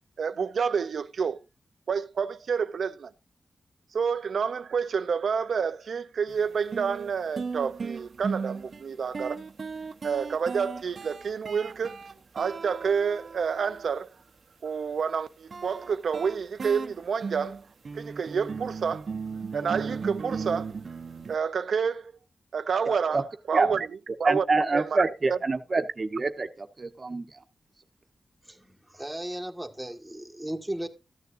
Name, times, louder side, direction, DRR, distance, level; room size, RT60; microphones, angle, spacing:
voice 1, 0.2-1.4 1.9-3.1 3.9-9.4 10.0-12.0 12.3-14.1 14.6-17.6 17.9-19.1 19.5-20.7 21.3-22.1 22.5-23.9 24.2-24.4 24.7-25.4, right 6 dB, 85° right, 0.5 m, -29 dB
sound 1, 6.3-6.4 6.7-14.0 15.5-21.4, right 5 dB, 60° right, 0.7 m, -36 dB
voice 2, 22.9-23.2 23.5-23.7 24.2-27.3, right 3 dB, 40° right, 1.0 m, -26 dB
voice 3, 28.4-30.9, right 1 dB, 5° right, 1.5 m, -36 dB
14.5 x 9.3 x 2.5 m
wide cardioid pair, 110°, 0 cm